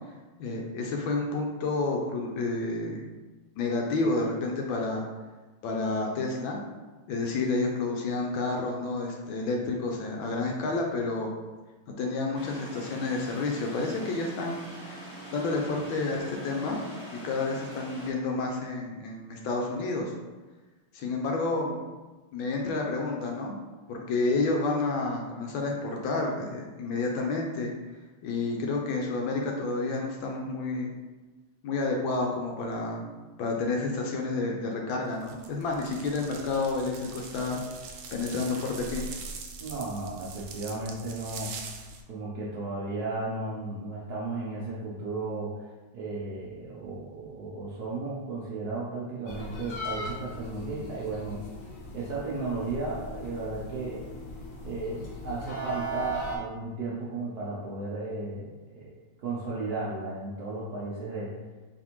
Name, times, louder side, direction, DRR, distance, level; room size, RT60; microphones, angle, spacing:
voice 1, 0.4-3.0 3.6-5.0 5.6-6.6 7.1-11.3 12.0-16.8 17.1-20.1 20.9-21.8 22.3-23.5 23.9-27.7 28.2-30.9 31.6-33.0 33.4-37.6 38.1-39.1, left 3 dB, 75° left, 0 dB, 1.3 m, -30 dB
sound 1, 12.3-18.1, right 1 dB, 20° right, 1.1 m, -43 dB
sound 2, 35.2-42.0, right 5 dB, 85° right, 1.5 m, -42 dB
voice 2, 39.6-41.5 42.1-45.7 45.9-51.4 51.9-54.1 54.6-58.9 59.2-61.3, right 3 dB, 65° right, -6 dB, 0.9 m, -34 dB
sound 3, 49.3-56.4, right 1 dB, 55° left, 0.9 m, -38 dB
4.2 x 3.3 x 3.0 m, 1.2 s
omnidirectional pair, 2.4 m